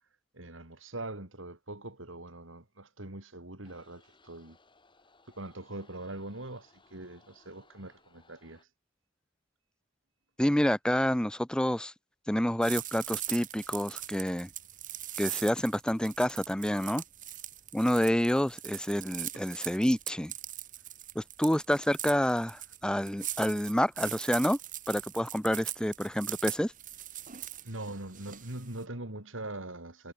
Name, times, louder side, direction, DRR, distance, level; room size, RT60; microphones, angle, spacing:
voice 1, 0.3-4.6 5.3-8.7 27.6-30.1, right 2 dB, 75° right, 4.1 m, -42 dB
sound 1, 3.6-8.7, left 3 dB, 25° left, 7.9 m, -64 dB
voice 2, 10.4-11.9 12.3-14.5 15.2-17.0 17.7-20.3 21.1-24.6 24.9-26.7, equal, 5° left, 0.7 m, -28 dB
sound 2, 12.6-28.8, right 12 dB, 40° right, 2.2 m, -41 dB
head